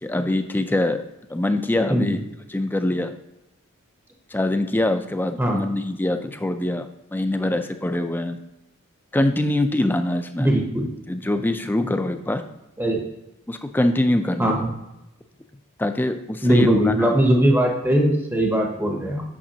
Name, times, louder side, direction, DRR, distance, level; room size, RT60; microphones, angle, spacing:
voice 1, 0.0-1.0 1.3-2.2 2.5-3.2 4.3-6.9 7.1-8.4 9.1-10.5 11.1-12.4 13.5-14.6 15.8-17.2, left 1 dB, 10° left, 8 dB, 0.3 m, -23 dB
voice 2, 10.4-10.9 12.8-13.0 14.4-14.7 16.4-19.2, right 1 dB, 10° right, 1 dB, 0.7 m, -20 dB
8.6 x 5.9 x 2.8 m, 0.92 s
head